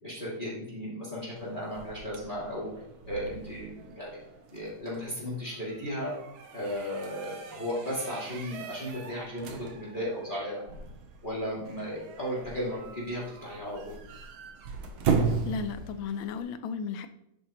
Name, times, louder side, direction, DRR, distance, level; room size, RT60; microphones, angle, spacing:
voice 1, 0.0-2.7 3.1-3.7 3.9-4.2 4.5-6.1 6.5-10.6 11.2-14.0, equal, 20° left, -7 dB, 2.9 m, -35 dB
sound 1, 1.4-16.4, right 5 dB, 70° right, 1.9 m, -37 dB
voice 2, 15.3-17.1, left 5 dB, 70° left, 10 dB, 1.4 m, -35 dB
10.5 x 8.3 x 3.2 m, 0.80 s
omnidirectional pair, 2.4 m